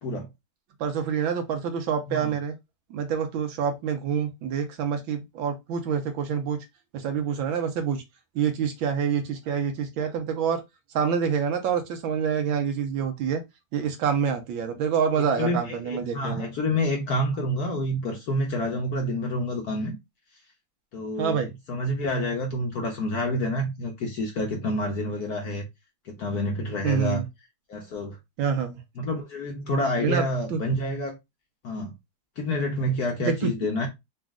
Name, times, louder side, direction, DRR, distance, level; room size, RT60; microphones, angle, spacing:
voice 1, 0.8-2.5 2.9-6.6 6.9-8.0 8.3-10.6 10.9-13.4 13.7-16.5 21.2-21.5 26.8-27.3 28.4-28.8 30.0-30.2 30.5-30.6 33.2-33.5, right 7 dB, 70° right, 1.4 m, -27 dB
voice 2, 15.4-19.9 20.9-21.4 21.7-25.6 26.0-27.2 27.7-28.2 29.0-31.1 31.6-31.9 32.4-33.9, left 1 dB, 60° left, 1.1 m, -28 dB
4.1 x 2.4 x 3.5 m
omnidirectional pair, 2.4 m